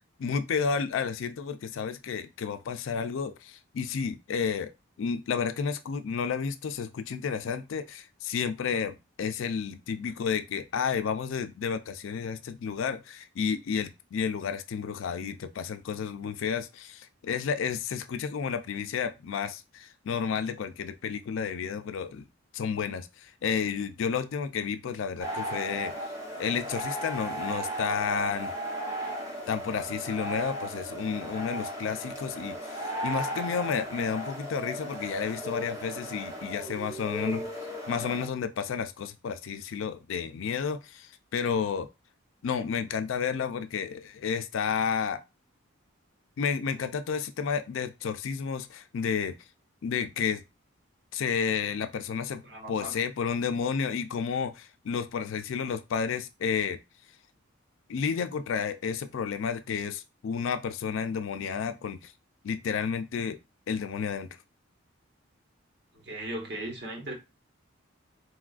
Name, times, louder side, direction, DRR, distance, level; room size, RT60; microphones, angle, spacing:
voice 1, 0.0-4.7 5.0-22.3 22.5-25.9 26.4-28.5 29.5-37.4 37.9-41.9 42.4-45.2 46.4-49.4 49.8-50.4 51.1-52.4 52.7-56.8 57.9-62.1 62.4-63.4 63.7-64.3, left 6 dB, 70° left, 0.4 m, -31 dB
sound 1, 25.2-38.3, right 1 dB, 15° right, 0.8 m, -36 dB
voice 2, 37.2-37.5 52.4-53.0 65.9-67.1, right 1 dB, 50° right, 1.0 m, -38 dB
4.2 x 2.3 x 2.4 m
head